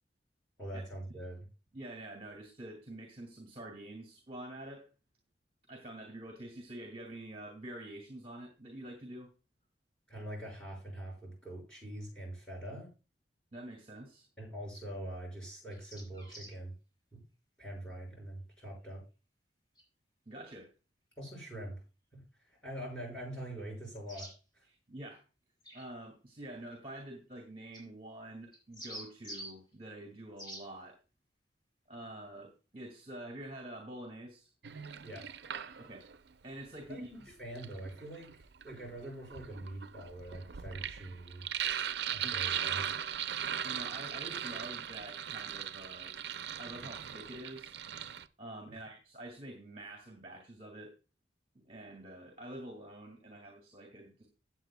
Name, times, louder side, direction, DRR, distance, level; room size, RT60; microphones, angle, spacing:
voice 1, 0.6-1.4 10.1-12.9 14.4-16.7 17.1-17.2 17.6-19.0 21.2-21.8 22.1-22.2 22.6-24.3 24.6-24.7 35.0-35.3 36.9-38.3 38.6-41.4 42.1-42.9, right 1 dB, 5° left, -2 dB, 5.9 m, -43 dB
voice 2, 1.7-4.9 5.7-9.3 13.5-14.3 20.3-20.7 24.6-25.2 25.7-31.0 31.9-34.5 35.8-36.1 36.4-37.1 42.2-42.3 43.6-46.1 46.6-47.8 48.4-50.9 51.5-54.3, right 1 dB, 35° right, 1 dB, 2.1 m, -47 dB
sound 1, 15.7-16.6 19.8-19.9 24.1-24.3 25.6-25.9 27.7-27.8 28.5-29.5 30.4-30.6, equal, 25° left, 4.8 m, -46 dB
Sink (filling or washing), 34.6-36.2 37.3-48.2, right 9 dB, 65° right, 0.5 m, -39 dB
16.0 x 8.2 x 2.3 m, 0.31 s
head